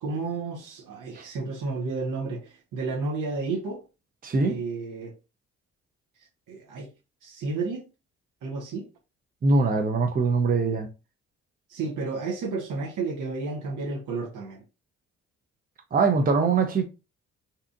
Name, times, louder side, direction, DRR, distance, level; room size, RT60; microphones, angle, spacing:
voice 1, 0.0-3.8 4.4-5.1 6.5-6.9 7.2-7.9 8.4-8.9 11.7-14.6, right 4 dB, 65° right, 0.9 m, -32 dB
voice 2, 4.2-4.5 9.4-10.9 15.9-16.8, right 4 dB, 25° right, 0.6 m, -22 dB
2.8 x 2.4 x 2.3 m
hypercardioid pair, 45°, 34 cm